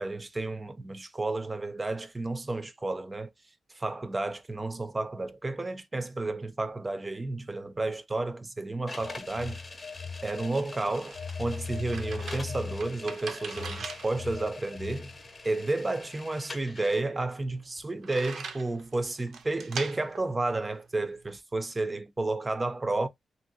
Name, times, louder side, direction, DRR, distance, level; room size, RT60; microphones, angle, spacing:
voice 1, 0.0-3.3 3.7-9.6 10.2-15.1 15.4-23.1, right 2 dB, 25° right, 0.4 m, -31 dB
sound 1, 8.9-17.0, left 3 dB, 30° left, 0.7 m, -45 dB
Telephone, 9.0-10.8 11.1-15.2, left 5 dB, 50° left, 0.4 m, -39 dB
sound 2, 10.8-21.4, right 5 dB, 75° right, 0.5 m, -43 dB
2.7 x 2.7 x 2.7 m
cardioid pair, 85°, 0 cm